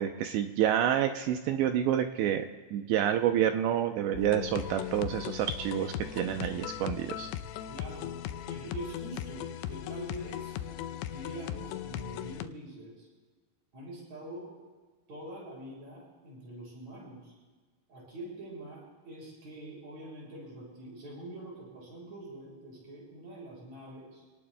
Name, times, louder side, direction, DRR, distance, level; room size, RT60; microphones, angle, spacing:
voice 1, 0.0-2.5 2.7-7.3, right 10 dB, 80° right, 6 dB, 2.7 m, -28 dB
sound 1, 4.1-12.5, left 11 dB, 90° left, 2.4 m, -38 dB
voice 2, 7.7-8.2 8.4-13.1 13.7-14.5 15.1-17.3 17.9-24.2, right 1 dB, 35° right, -4 dB, 7.6 m, -45 dB
28.5 x 18.5 x 2.2 m, 1.4 s
omnidirectional pair, 5.5 m